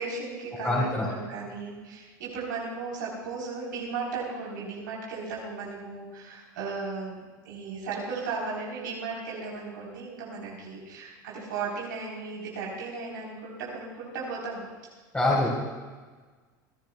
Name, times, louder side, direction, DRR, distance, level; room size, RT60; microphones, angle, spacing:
voice 1, 0.0-14.6, right 4 dB, 85° right, -5 dB, 3.8 m, -36 dB
voice 2, 0.6-1.1 15.1-15.5, left 2 dB, 15° left, -7 dB, 4.2 m, -24 dB
29.0 x 12.0 x 2.3 m, 1.4 s
hypercardioid pair, 90°, 10 cm